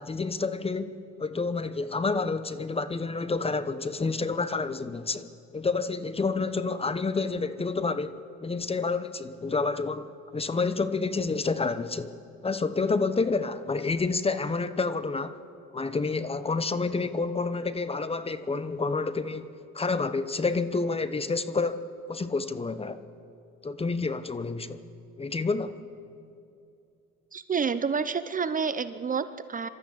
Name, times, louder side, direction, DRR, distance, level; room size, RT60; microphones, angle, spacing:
voice 1, 0.0-5.3 5.5-12.1 12.4-15.4 15.7-19.5 19.7-21.8 22.1-23.0 23.6-24.8 25.2-25.8, left 4 dB, 20° left, 0.9 m, -29 dB
voice 2, 27.3-29.7, right 6 dB, 30° right, 0.7 m, -29 dB
25.0 x 13.0 x 8.5 m
supercardioid pair, 95°, 29 cm